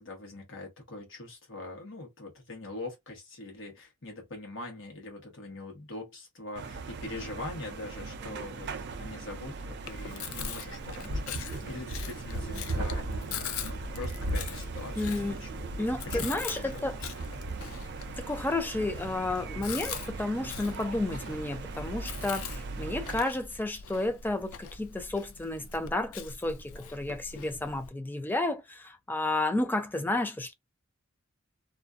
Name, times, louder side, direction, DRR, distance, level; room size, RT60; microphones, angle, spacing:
voice 1, 0.0-8.7 9.0-15.5 15.8-17.1, left 2 dB, 65° left, 1.0 m, -43 dB
sound 1, 6.6-23.2, right 3 dB, 55° right, 0.4 m, -41 dB
Chewing mastication, 9.9-27.9, left 7 dB, 80° left, 0.4 m, -43 dB
sound 2, 11.1-20.1, right 1 dB, 75° right, 0.8 m, -38 dB
voice 2, 15.0-15.4 15.8-17.0 18.2-30.5, left 2 dB, 10° left, 0.4 m, -32 dB
2.5 x 2.2 x 2.3 m
head